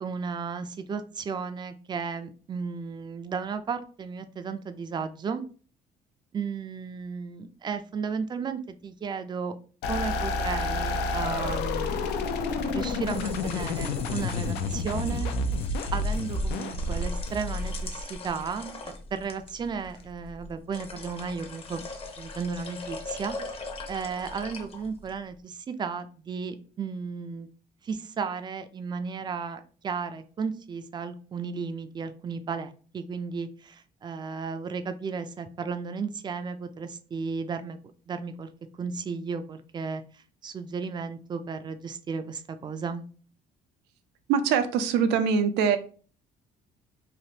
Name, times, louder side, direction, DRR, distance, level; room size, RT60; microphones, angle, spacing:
voice 1, 0.0-5.4 6.3-9.6 9.9-12.0 12.7-15.3 15.9-21.8 22.2-23.4 23.9-27.5 27.8-37.8 38.1-38.5 38.8-43.0, right 5 dB, 25° right, 9 dB, 0.3 m, -34 dB
sound 1, 9.8-18.3, left 3 dB, 90° left, 0.5 m, -29 dB
sound 2, 12.9-25.2, left 3 dB, 35° left, 0.7 m, -41 dB
voice 2, 44.3-45.8, right 7 dB, 90° right, 9 dB, 0.5 m, -23 dB
3.2 x 2.5 x 2.8 m, 0.40 s
cardioid pair, 110°, 17 cm